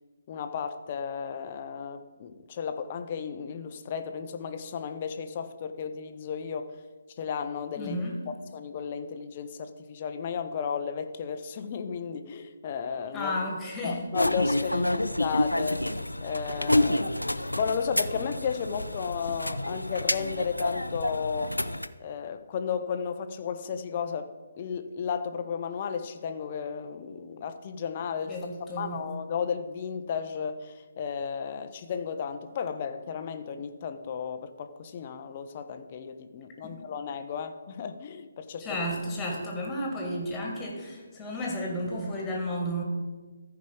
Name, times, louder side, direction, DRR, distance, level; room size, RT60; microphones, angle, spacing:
voice 1, 0.3-6.8 7.2-8.0 8.5-13.4 13.8-17.2 17.6-21.5 22.0-24.3 24.5-28.4 28.8-38.8, left 6 dB, 30° left, 8 dB, 0.6 m, -34 dB
voice 2, 7.8-8.2 13.1-14.1 14.7-14.8 28.3-29.1 36.6-36.8 38.6-42.8, equal, 10° left, -1 dB, 1.8 m, -33 dB
sound 1, 14.1-21.9, left 1 dB, 80° left, 0.4 m, -28 dB
14.0 x 4.8 x 4.8 m, 1.3 s
figure-of-eight pair, 140°, 0 cm